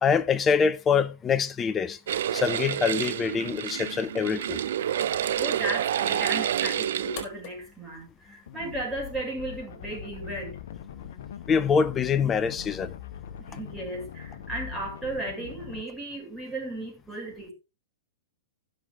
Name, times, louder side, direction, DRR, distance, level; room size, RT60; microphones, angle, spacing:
voice 1, 0.0-2.0 2.3-4.6 11.5-12.9, left 6 dB, 20° left, 1.0 m, -25 dB
sound 1, 2.1-7.2, right 10 dB, 65° right, 0.6 m, -28 dB
sound 2, 4.3-9.3, left 8 dB, 45° left, 3.9 m, -50 dB
voice 2, 5.3-10.6 13.4-17.5, right 1 dB, 10° right, 6.4 m, -35 dB
sound 3, 8.5-15.8, left 9 dB, 60° left, 1.2 m, -42 dB
15.5 x 6.6 x 3.6 m
hypercardioid pair, 110°, 0 cm